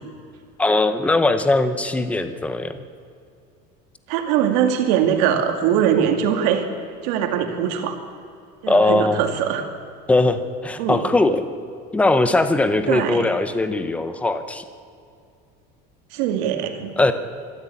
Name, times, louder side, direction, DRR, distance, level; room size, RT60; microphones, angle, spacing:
voice 1, 0.6-2.8 8.7-9.2 10.1-11.5 11.9-14.6 17.0-17.1, left 2 dB, 5° left, 10 dB, 0.8 m, -20 dB
voice 2, 4.1-6.6 7.0-8.0 8.6-9.6 10.8-11.1 12.9-13.3 16.1-16.9, right 9 dB, 80° right, 5 dB, 2.6 m, -21 dB
24.0 x 13.0 x 8.5 m, 2.5 s
cardioid pair, 180°, 21 cm